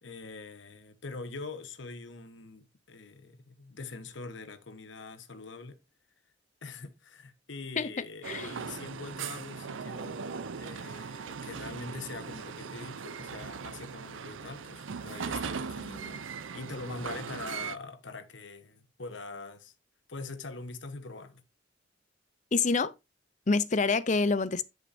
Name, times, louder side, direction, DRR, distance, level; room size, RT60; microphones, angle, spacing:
voice 1, 0.0-5.8 6.6-19.7 20.1-21.4, left 3 dB, 75° left, 1.2 m, -43 dB
sound 1, 8.2-17.8, right 6 dB, 90° right, 0.6 m, -39 dB
voice 2, 22.5-22.9 23.5-24.6, left 4 dB, 40° left, 0.6 m, -26 dB
10.5 x 6.5 x 2.6 m
head